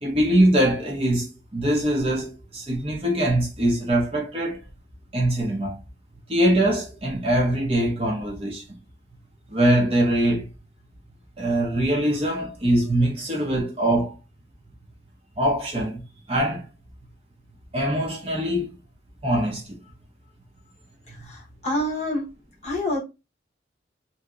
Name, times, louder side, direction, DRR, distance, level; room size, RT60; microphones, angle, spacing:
voice 1, 0.0-4.6 5.1-5.8 6.3-8.8 9.5-10.5 11.4-14.1 15.4-16.0 16.3-16.6 17.7-18.7 19.2-19.8, right 1 dB, 30° right, 0.8 m, -22 dB
voice 2, 21.1-22.2 22.6-23.0, left 1 dB, 35° left, 1.0 m, -27 dB
2.9 x 2.8 x 2.4 m
head